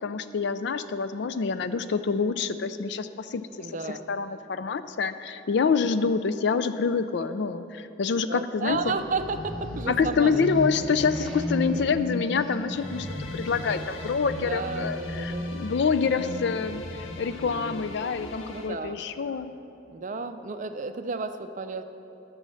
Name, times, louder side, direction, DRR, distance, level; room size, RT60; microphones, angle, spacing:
voice 1, 0.0-8.8 9.9-19.5, left 5 dB, 60° left, 12 dB, 0.4 m, -27 dB
voice 2, 3.6-4.0 8.3-10.6 14.3-15.5 18.5-19.0 19.9-21.8, right 4 dB, 40° right, 9 dB, 0.5 m, -32 dB
sound 1, 8.7-19.4, left 1 dB, 5° left, 1.2 m, -35 dB
sound 2, 12.7-18.7, left 3 dB, 90° left, 1.0 m, -43 dB
12.0 x 6.3 x 6.3 m, 2.9 s
head